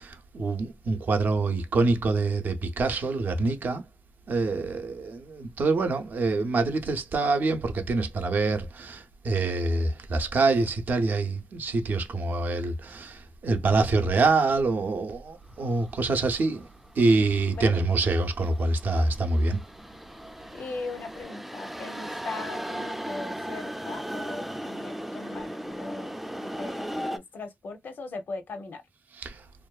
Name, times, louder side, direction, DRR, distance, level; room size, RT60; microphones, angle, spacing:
voice 1, 0.3-3.8 4.3-9.0 9.3-13.1 13.4-16.6 17.0-19.6, right 3 dB, 70° right, 0.5 m, -25 dB
sound 1, 15.5-27.2, equal, 5° right, 0.3 m, -38 dB
voice 2, 20.5-28.8, left 3 dB, 70° left, 0.6 m, -39 dB
2.5 x 2.2 x 2.3 m
cardioid pair, 75°, 3 cm